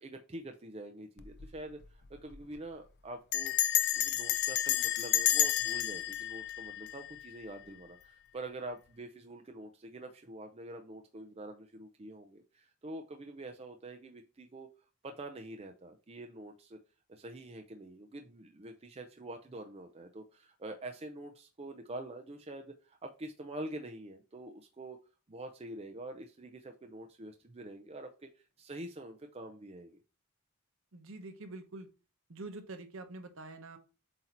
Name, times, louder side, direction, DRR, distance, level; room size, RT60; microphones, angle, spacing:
voice 1, 0.0-3.5 3.9-14.7 15.0-16.8 17.1-25.0 25.3-28.1 28.6-30.0, right 1 dB, 25° right, 4 dB, 0.6 m, -46 dB
Bell, 1.2-1.6 1.8-1.9 2.1-2.5 3.3-7.4, left 12 dB, 45° left, 0.5 m, -31 dB
voice 2, 30.9-31.9 32.3-33.8, right 2 dB, 60° right, 7 dB, 1.0 m, -45 dB
7.8 x 2.9 x 4.3 m, 0.32 s
head